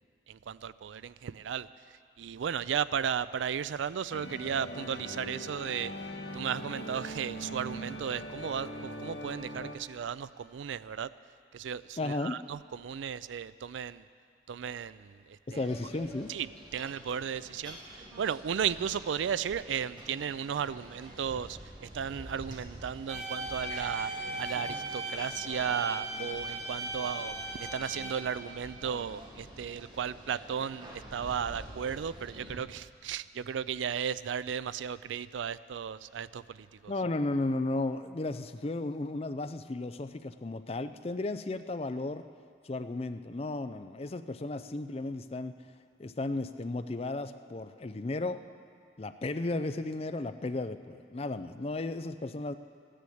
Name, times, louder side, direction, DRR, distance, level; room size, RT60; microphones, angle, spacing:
voice 1, 0.3-5.9 6.3-11.1 11.5-14.1 14.5-15.6 16.3-16.5 16.7-24.1 24.4-36.9, right 8 dB, 90° right, 17 dB, 0.4 m, -35 dB
sound 1, 4.1-9.7, equal, 70° left, 1.3 m, -41 dB
voice 2, 12.0-12.4 15.5-16.3 36.9-42.3 42.6-45.6 46.0-48.4 49.0-52.5, left 2 dB, 35° left, 10 dB, 0.5 m, -34 dB
sound 2, 15.5-32.5, right 1 dB, 25° right, 1.9 m, -48 dB
sound 3, 23.1-28.1, right 1 dB, 5° left, 2.1 m, -37 dB
14.5 x 10.0 x 7.8 m, 2.2 s
head